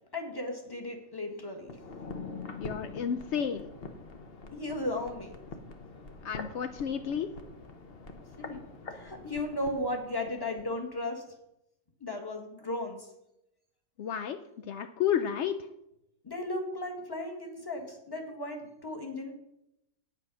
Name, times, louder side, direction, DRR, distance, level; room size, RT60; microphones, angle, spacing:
voice 1, 0.1-1.8 4.5-5.4 8.4-8.6 8.9-11.2 12.0-13.1 16.2-19.3, left 1 dB, 15° left, 2 dB, 1.6 m, -35 dB
sound 1, 1.6-10.7 11.0-11.1, left 3 dB, 40° left, 1.0 m, -44 dB
voice 2, 2.6-3.7 6.2-7.3 14.0-14.4 14.7-15.6, left 8 dB, 75° left, 9 dB, 0.6 m, -31 dB
9.1 x 8.0 x 6.1 m, 0.85 s
omnidirectional pair, 1.8 m